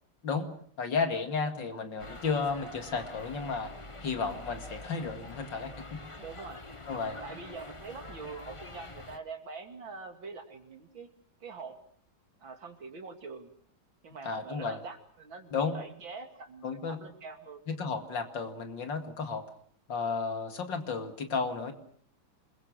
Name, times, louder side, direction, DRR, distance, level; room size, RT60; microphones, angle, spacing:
voice 1, 0.8-3.7 4.0-6.0 6.9-7.2 14.2-14.8 15.5-15.8 16.6-17.0 17.7-19.4 19.9-21.7, left 5 dB, 65° left, 6 dB, 2.9 m, -33 dB
sound 1, 2.0-9.2, left 2 dB, 20° left, 1.1 m, -46 dB
voice 2, 6.2-6.7 7.2-11.1 11.4-11.8 12.4-13.5 14.0-17.6, right 4 dB, 75° right, 6 dB, 3.2 m, -44 dB
27.0 x 22.0 x 6.5 m, 0.62 s
omnidirectional pair, 2.2 m